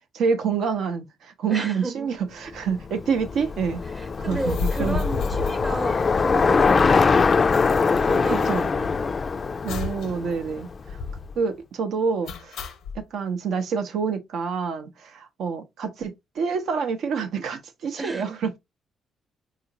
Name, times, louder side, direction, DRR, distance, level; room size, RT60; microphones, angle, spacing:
voice 1, 0.1-3.8 4.2-5.0 8.5-8.7 9.6-11.0 11.4-12.6 12.9-18.6, right 5 dB, 75° right, 0.6 m, -27 dB
voice 2, 1.5-2.1 3.9-7.0 7.7-8.8 18.0-18.4, right 2 dB, 25° right, 0.7 m, -33 dB
Bicycle, 2.7-11.0, left 4 dB, 35° left, 0.3 m, -22 dB
sound 1, 4.2-6.5 6.8-6.9 7.1-9.2 9.7-10.1 10.4-10.5 10.9-11.3 12.3-13.0, left 5 dB, 80° left, 0.6 m, -32 dB
3.8 x 2.4 x 2.8 m
cardioid pair, 90°, 0 cm